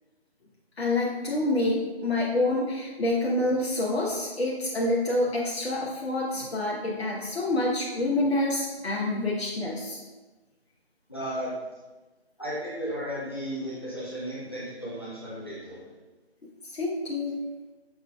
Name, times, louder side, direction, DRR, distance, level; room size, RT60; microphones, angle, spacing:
voice 1, 0.8-10.0 16.7-17.4, left 2 dB, 70° left, -3 dB, 0.8 m, -27 dB
voice 2, 11.1-11.5 12.4-15.8, equal, 25° left, -8 dB, 0.6 m, -34 dB
5.7 x 3.3 x 2.3 m, 1.2 s
figure-of-eight pair, 160°, 32 cm